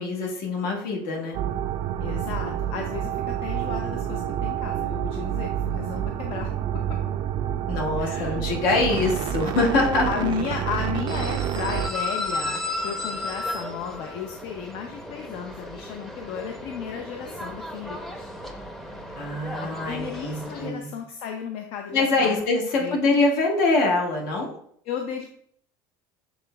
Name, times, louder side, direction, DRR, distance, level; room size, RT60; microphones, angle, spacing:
voice 1, 0.0-1.4 7.7-10.1 19.1-20.9 21.9-24.5, left 3 dB, 80° left, 0 dB, 1.4 m, -24 dB
sound 1, 1.3-11.9, right 10 dB, 45° right, 0.4 m, -28 dB
voice 2, 2.0-6.5 8.0-8.4 10.0-18.3 19.6-23.0 24.9-25.3, left 7 dB, 60° left, 3 dB, 0.5 m, -34 dB
sound 2, 11.1-20.7, left 2 dB, 5° left, 0.6 m, -34 dB
7.1 x 3.3 x 2.3 m, 0.64 s
supercardioid pair, 120°, 11 cm